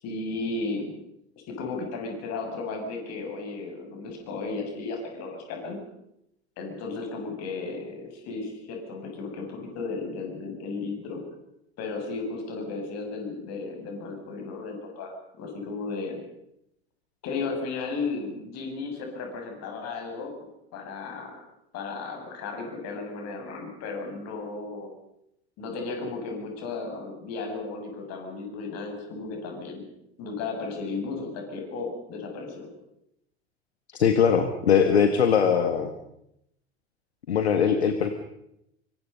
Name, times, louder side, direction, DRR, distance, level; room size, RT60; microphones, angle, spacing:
voice 1, 0.0-0.9 1.5-5.8 6.6-11.2 11.8-16.2 17.2-21.3 21.7-24.9 25.6-29.8 30.2-32.7, left 3 dB, 50° left, 3 dB, 7.3 m, -34 dB
voice 2, 33.9-35.9 37.3-38.1, left 7 dB, 75° left, 8 dB, 1.7 m, -21 dB
25.0 x 25.0 x 5.5 m, 0.81 s
figure-of-eight pair, 70°, 33 cm